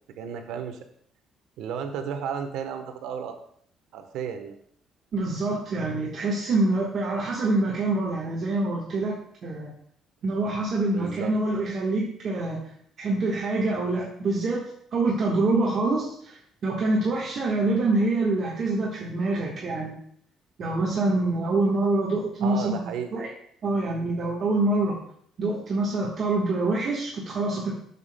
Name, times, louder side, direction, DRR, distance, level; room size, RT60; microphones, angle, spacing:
voice 1, 0.2-0.8 1.6-3.4 3.9-4.6 10.9-11.3 22.4-23.1, right 7 dB, 80° right, 7 dB, 1.0 m, -33 dB
voice 2, 5.1-9.1 9.4-9.7 10.2-12.6 13.0-14.6 14.9-20.0 20.6-23.3 23.6-25.0 25.4-27.7, right 2 dB, 40° right, -4 dB, 1.3 m, -25 dB
11.0 x 7.0 x 2.2 m, 0.65 s
cardioid pair, 155°, 0 cm